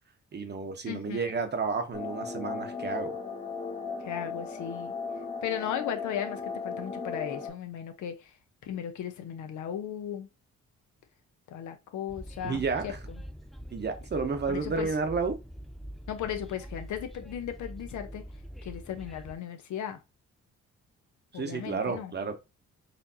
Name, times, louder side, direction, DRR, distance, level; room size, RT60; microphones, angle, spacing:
voice 1, 0.3-3.2 12.4-13.0 13.7-15.4 21.3-22.4, right 4 dB, 35° right, 0.8 m, -31 dB
voice 2, 0.9-1.2 4.0-4.9 5.4-8.3 8.6-10.3 11.5-12.9 14.5-14.9 16.1-18.3 18.6-20.0 21.3-22.1, left 9 dB, 75° left, 0.8 m, -36 dB
sound 1, 1.9-7.5, left 5 dB, 15° left, 0.8 m, -36 dB
Train, 12.1-19.3, equal, ahead, 0.3 m, -44 dB
4.3 x 2.6 x 2.7 m
cardioid pair, 90°, 30 cm